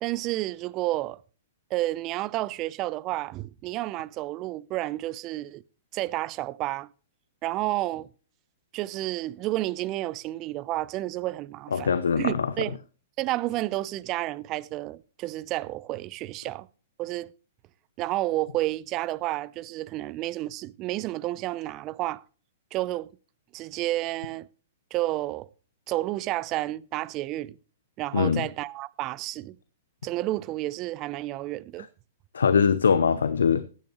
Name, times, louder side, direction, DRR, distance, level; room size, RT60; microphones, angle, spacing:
voice 1, 0.0-1.2 1.7-5.6 5.9-6.9 7.4-8.1 8.7-12.8 13.2-16.7 17.0-17.3 18.0-22.2 22.7-23.1 23.5-24.5 24.9-25.5 25.9-27.6 28.0-29.6 30.0-31.9, right 16 dB, 35° right, 0.6 m, -31 dB
voice 2, 11.7-12.5 28.1-28.5 32.3-33.6, left 6 dB, 75° left, 0.8 m, -22 dB
15.0 x 10.5 x 3.1 m
figure-of-eight pair, 110°, 0 cm